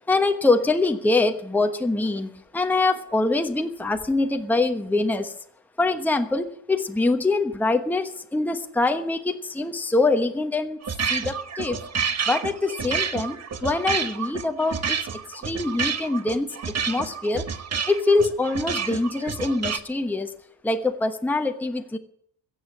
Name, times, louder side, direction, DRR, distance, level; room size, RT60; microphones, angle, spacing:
voice 1, 0.1-5.3 5.8-10.8 11.1-11.8 12.3-17.5 17.9-20.3 20.6-22.0, left 2 dB, 5° left, 5 dB, 1.1 m, -24 dB
sound 1, 10.8-19.8, right 6 dB, 30° right, 1.1 m, -29 dB
15.5 x 7.5 x 9.5 m, 0.65 s
cardioid pair, 90°, 49 cm